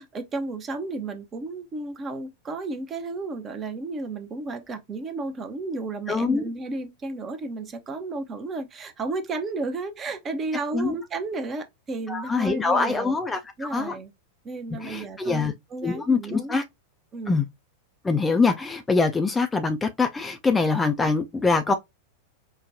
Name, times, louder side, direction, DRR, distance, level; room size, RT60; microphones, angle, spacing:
voice 1, 0.0-13.2 13.6-14.1 14.4-16.6 17.1-17.4, right 3 dB, 25° right, 0.7 m, -33 dB
voice 2, 6.1-6.5 10.7-10.9 12.1-13.9 14.8-15.5 15.8-16.6 17.3-17.5 18.0-21.7, left 4 dB, 10° left, 0.4 m, -24 dB
4.9 x 2.2 x 2.5 m
figure-of-eight pair, 90°, 0 cm